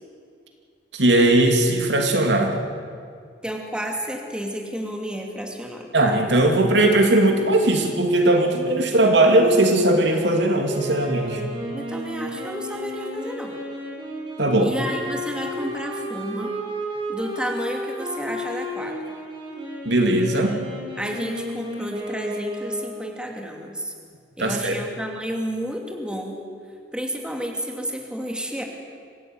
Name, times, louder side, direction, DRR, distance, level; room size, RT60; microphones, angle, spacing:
voice 1, 0.9-2.6 5.9-11.4 14.4-14.7 19.8-20.6 24.4-24.8, right 1 dB, 75° right, 3 dB, 2.9 m, -19 dB
voice 2, 3.4-5.9 11.7-13.6 14.6-16.5 17.1-19.0 21.0-23.9 24.4-26.4 26.9-28.6, equal, 5° right, 1 dB, 2.6 m, -31 dB
Wind instrument woodwind instrument, 10.7-23.1, equal, 30° right, 6.0 m, -33 dB
25.5 x 15.5 x 9.4 m, 2.2 s
head